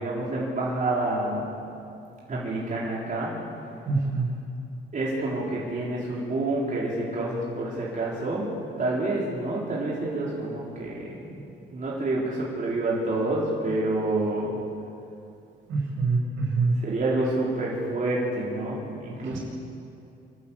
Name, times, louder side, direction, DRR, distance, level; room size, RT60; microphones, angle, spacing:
voice 1, 0.0-1.4 2.3-3.3 4.9-8.5 8.8-11.2 11.7-14.5 16.8-19.4, right 2 dB, 40° right, -5 dB, 4.3 m, -28 dB
voice 2, 3.8-4.3 11.2-11.4 15.7-16.8 19.2-19.4, right 3 dB, 75° right, -1 dB, 6.6 m, -25 dB
25.5 x 12.5 x 8.7 m, 2.7 s
cardioid pair, 90°, 20 cm